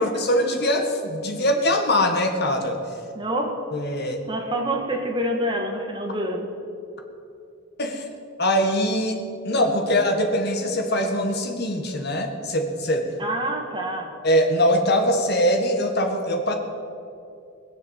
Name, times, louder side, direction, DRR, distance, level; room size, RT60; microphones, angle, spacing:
voice 1, 0.0-2.8 3.7-4.2 7.8-8.1 8.4-13.1 14.2-16.5, equal, 50° left, 4 dB, 1.8 m, -22 dB
voice 2, 3.1-3.5 4.3-6.5 13.2-14.1, right 1 dB, 25° right, 1 dB, 1.8 m, -27 dB
21.0 x 7.3 x 7.6 m, 2.6 s
head